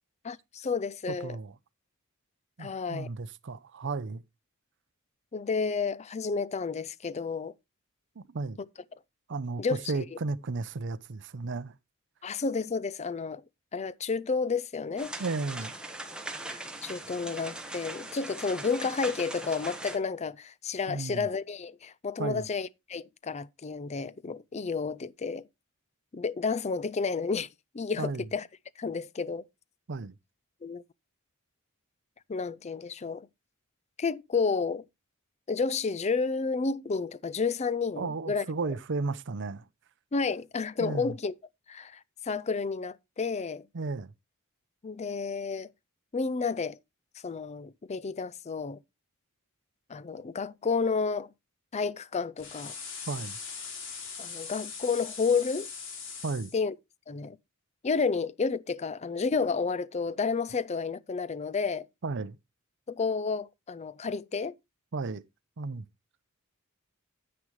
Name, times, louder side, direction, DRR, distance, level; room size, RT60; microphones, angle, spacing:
voice 1, 0.2-1.4 2.6-3.1 5.3-7.5 9.6-9.8 12.2-13.4 13.7-15.1 16.4-25.5 26.1-27.5 27.7-28.4 28.8-29.4 30.6-30.8 32.3-33.3 34.0-34.8 35.5-38.5 40.1-41.3 41.7-43.7 44.8-45.7 46.1-46.8 47.2-48.8 49.9-51.3 51.7-52.7 54.2-55.7 56.5-56.7 57.1-57.4 57.8-61.9 62.9-64.6, left 4 dB, 30° left, 0.4 m, -31 dB
voice 2, 1.1-1.5 2.6-4.2 8.2-8.6 9.3-11.7 15.2-15.7 20.9-21.3 22.2-22.5 28.0-28.3 29.9-30.1 38.0-39.7 40.8-41.1 43.7-44.1 53.1-53.4 56.2-56.5 62.0-62.4 64.9-65.2 65.6-65.8, right 3 dB, 55° right, 0.6 m, -34 dB
sound 1, 15.0-20.0, right 2 dB, 5° right, 1.4 m, -40 dB
sound 2, 52.4-56.6, left 5 dB, 60° left, 2.8 m, -41 dB
9.9 x 8.8 x 3.1 m
head